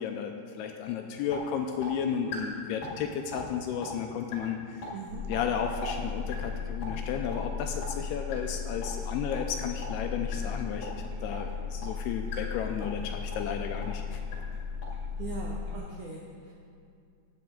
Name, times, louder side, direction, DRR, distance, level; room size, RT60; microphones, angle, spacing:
voice 1, 0.0-4.9 5.3-14.2, left 7 dB, 85° left, 4 dB, 2.4 m, -33 dB
sound 1, 0.8-0.9 1.3-1.4 1.8-1.9 2.3-2.4 2.8-3.0 3.3-3.5 3.8-3.9 4.3-4.4 4.8-4.9 5.3-5.4 5.8-5.9 6.3-6.5 6.8-6.9 7.3-7.4 7.8-7.9 8.3-8.4 8.8-8.9 9.3-9.4 9.8-10.0 10.3-10.4 10.8-10.9 11.3-11.4 11.8-11.9 12.3-12.4 12.8-13.0 13.3-13.5 13.8-13.9 14.3-14.4 14.8-14.9, left 4 dB, 60° left, 3.6 m, -39 dB
voice 2, 4.9-5.2 15.2-16.5, right 5 dB, 75° right, -3 dB, 1.8 m, -40 dB
sound 2, 5.1-15.8, left 5 dB, 40° right, 3.5 m, -36 dB
17.0 x 8.0 x 3.8 m, 2.4 s
omnidirectional pair, 4.9 m